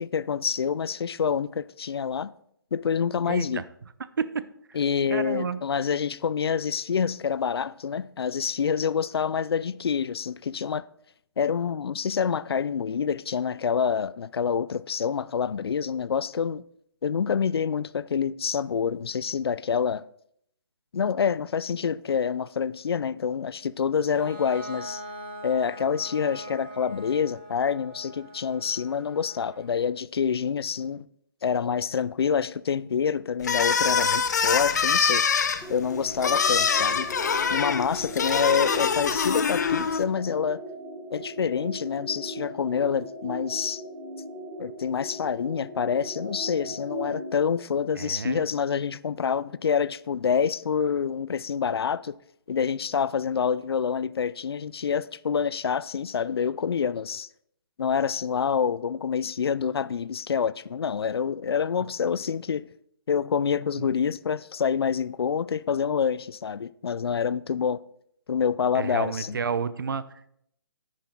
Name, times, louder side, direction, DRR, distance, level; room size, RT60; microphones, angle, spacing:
voice 1, 0.0-2.3 2.7-3.6 4.7-10.8 11.4-16.6 17.0-20.0 20.9-25.0 25.4-31.1 31.4-35.2 35.7-37.1 37.5-40.6 41.1-43.8 44.6-52.2 52.5-57.3 57.8-62.7 63.1-67.8 68.3-69.4, left 7 dB, 90° left, 0.4 m, -27 dB
voice 2, 3.3-3.6 4.2-4.4 5.1-5.6 48.0-48.4 63.8-63.9 68.7-70.3, right 6 dB, 60° right, 0.7 m, -30 dB
Bowed string instrument, 24.1-29.7, right 1 dB, 30° left, 2.5 m, -42 dB
sound 1, 33.4-40.0, left 6 dB, 45° left, 0.8 m, -24 dB
sound 2, 35.6-47.5, equal, ahead, 1.2 m, -39 dB
10.5 x 9.4 x 3.8 m
hypercardioid pair, 175°, 13 cm